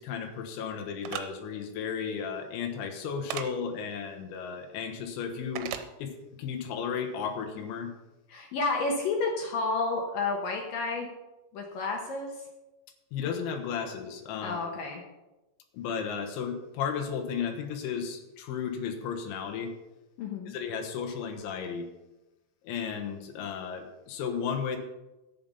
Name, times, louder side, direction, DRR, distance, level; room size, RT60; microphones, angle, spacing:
voice 1, 0.0-5.7 6.0-7.9 13.1-14.6 15.7-19.7 20.5-21.9 22.6-24.8, left 6 dB, 85° left, 6 dB, 3.5 m, -34 dB
sound 1, 1.0-1.2 3.3-3.5 5.6-5.9, right 10 dB, 85° right, 3.0 m, -34 dB
voice 2, 8.3-11.1 11.5-12.3 14.4-15.0 20.2-20.5, left 3 dB, 65° left, 1 dB, 2.3 m, -30 dB
11.0 x 8.7 x 5.4 m, 1.0 s
omnidirectional pair, 5.2 m